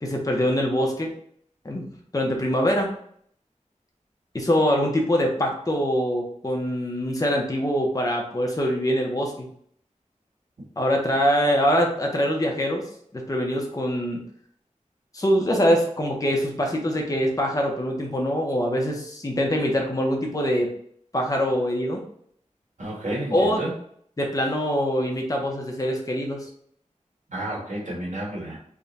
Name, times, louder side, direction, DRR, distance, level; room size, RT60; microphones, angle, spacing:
voice 1, 0.0-1.1 1.6-1.9 2.1-2.9 4.3-9.5 10.8-12.8 13.1-14.2 15.1-20.7 21.1-22.0 23.3-23.6 24.2-26.5, equal, 25° left, 1 dB, 0.7 m, -24 dB
voice 2, 22.8-23.7 27.3-28.6, right 1 dB, 70° right, -5 dB, 1.5 m, -31 dB
3.6 x 2.2 x 4.0 m, 0.64 s
wide cardioid pair, 65°, 13 cm